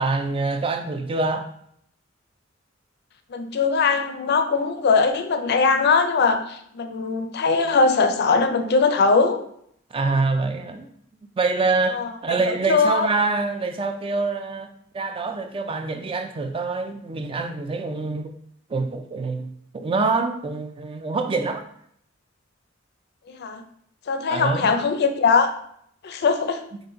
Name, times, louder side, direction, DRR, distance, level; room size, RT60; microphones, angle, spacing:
voice 1, 0.0-1.5 9.9-10.9 11.4-12.0 12.2-14.7 14.9-18.3 18.7-21.6 24.3-24.7, right 3 dB, 25° right, 0.3 m, -25 dB
voice 2, 3.3-9.4 11.9-12.1 12.5-13.1 23.3-23.6 24.1-25.5 26.0-26.6, left 4 dB, 55° left, 0.4 m, -21 dB
3.9 x 2.5 x 3.8 m
head